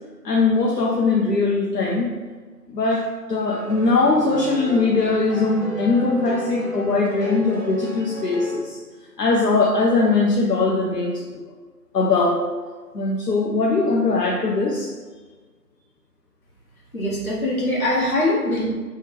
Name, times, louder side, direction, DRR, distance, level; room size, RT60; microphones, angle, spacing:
voice 1, 0.2-2.1 2.7-8.8 9.2-11.4 11.9-12.4 12.9-14.9, left 3 dB, 75° left, -2 dB, 0.6 m, -20 dB
sound 1, 3.5-8.5, right 1 dB, 45° right, 0.5 m, -33 dB
voice 2, 16.9-18.7, left 1 dB, 60° left, -5 dB, 1.2 m, -22 dB
3.2 x 2.2 x 3.3 m, 1.4 s
figure-of-eight pair, 175°, 49 cm